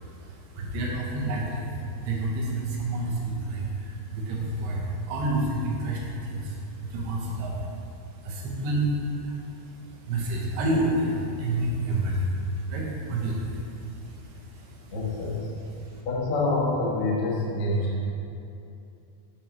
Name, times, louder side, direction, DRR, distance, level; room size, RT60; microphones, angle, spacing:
voice 1, 0.1-14.9 15.8-16.0, right 1 dB, 85° right, -3 dB, 3.0 m, -30 dB
voice 2, 14.9-15.5 16.0-18.1, left 2 dB, 85° left, -6 dB, 1.2 m, -27 dB
8.7 x 5.3 x 3.0 m, 2.7 s
omnidirectional pair, 4.6 m